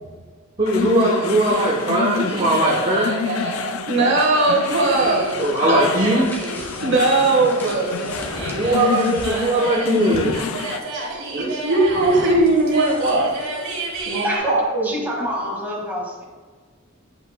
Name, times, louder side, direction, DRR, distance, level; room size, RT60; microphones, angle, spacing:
voice 1, 0.6-3.1 5.4-6.3 8.5-10.4, right 1 dB, 25° right, -5 dB, 0.9 m, -19 dB
sound 1, 0.7-10.8, left 7 dB, 80° left, 0.3 m, -29 dB
sound 2, 1.5-14.4, right 2 dB, 80° right, 1.8 m, -31 dB
voice 2, 3.9-6.0 6.8-8.0 10.9-13.3 14.0-15.0, right 2 dB, 55° right, -1 dB, 1.5 m, -19 dB
sound 3, 4.8-10.4 11.8-14.1, equal, 10° left, 1.0 m, -39 dB
voice 3, 14.2-16.2, equal, 10° right, -3 dB, 1.7 m, -26 dB
8.7 x 6.2 x 2.2 m, 1.5 s
head